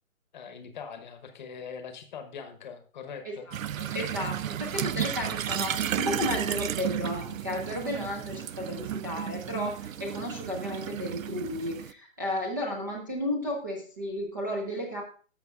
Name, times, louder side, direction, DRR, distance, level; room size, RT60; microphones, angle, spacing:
voice 1, 0.3-3.5, left 6 dB, 35° left, 8 dB, 1.0 m, -42 dB
voice 2, 3.2-15.0, left 1 dB, 15° right, -1 dB, 0.5 m, -33 dB
sound 1, 3.5-11.9, right 10 dB, 80° right, 0.6 m, -33 dB
13.5 x 6.5 x 2.4 m, 0.40 s
hypercardioid pair, 160°, 40 cm